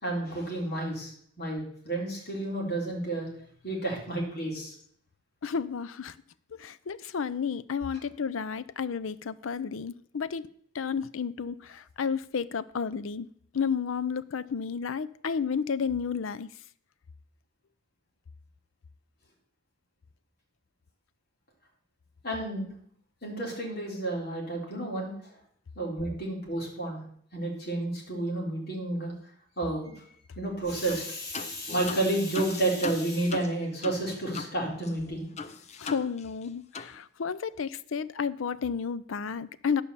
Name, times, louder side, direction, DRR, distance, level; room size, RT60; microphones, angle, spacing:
voice 1, 0.0-3.3 3.6-4.7 22.2-22.7 23.2-25.3 25.8-27.0 27.3-29.1 29.6-30.0 30.4-35.3, right 2 dB, 50° left, -2 dB, 3.9 m, -31 dB
voice 2, 5.4-6.2 6.5-10.5 10.7-13.3 13.5-16.5 35.8-39.8, left 6 dB, 80° left, 17 dB, 0.5 m, -32 dB
sound 1, 30.9-31.1 31.3-34.6 34.8-34.9 35.4-36.5 36.7-36.9, left 4 dB, 35° left, 0.6 m, -39 dB
12.0 x 5.5 x 6.8 m, 0.62 s
head